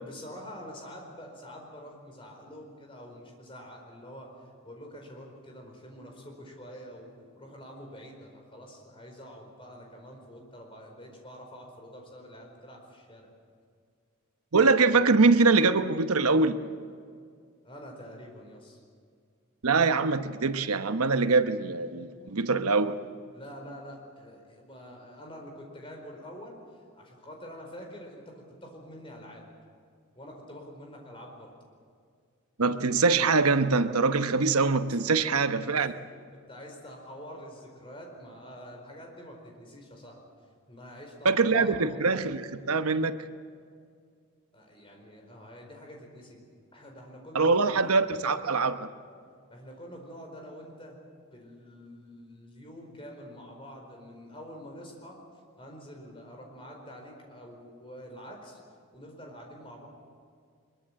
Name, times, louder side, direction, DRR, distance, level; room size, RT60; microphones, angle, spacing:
voice 1, 0.0-13.3 17.6-18.8 23.3-29.5 30.1-31.5 34.9-40.2 40.7-42.1 44.5-46.4 46.7-47.8 49.5-51.0 51.3-55.2 55.6-58.6 58.9-59.9, equal, 25° left, 1 dB, 4.6 m, -46 dB
voice 2, 14.5-16.6 19.6-23.0 32.6-35.9 41.2-43.2 47.3-48.9, right 4 dB, 90° right, 10 dB, 1.0 m, -23 dB
23.0 x 22.5 x 7.6 m, 2.2 s
head